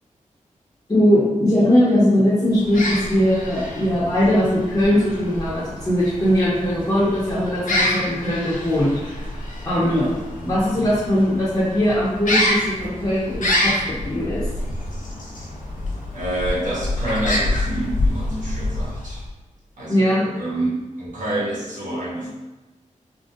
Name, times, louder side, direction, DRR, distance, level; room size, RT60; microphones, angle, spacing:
voice 1, 0.9-9.3 9.6-10.0 10.4-14.5 19.9-20.2, equal, 30° left, -9 dB, 0.7 m, -20 dB
sound 1, 2.5-19.3, left 1 dB, 85° left, 0.5 m, -27 dB
voice 2, 9.7-10.2 10.6-10.9 16.1-19.2 19.8-22.3, right 1 dB, 80° right, -6 dB, 1.1 m, -28 dB
3.7 x 2.1 x 2.5 m, 1.1 s
wide cardioid pair, 140°, 13 cm